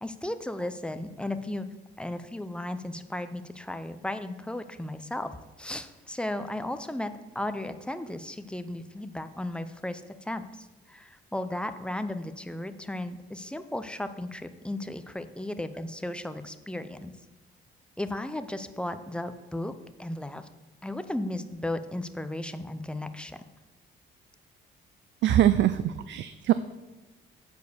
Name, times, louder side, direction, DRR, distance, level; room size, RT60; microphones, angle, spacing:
voice 1, 0.0-1.7 2.0-5.3 5.6-10.4 10.9-17.1 18.0-19.7 20.0-20.5 20.8-23.4, left 1 dB, 5° left, 10 dB, 0.6 m, -35 dB
voice 2, 25.2-26.5, right 12 dB, 65° right, 13 dB, 0.4 m, -23 dB
8.3 x 4.6 x 6.9 m, 1.1 s
cardioid pair, 90°, 20 cm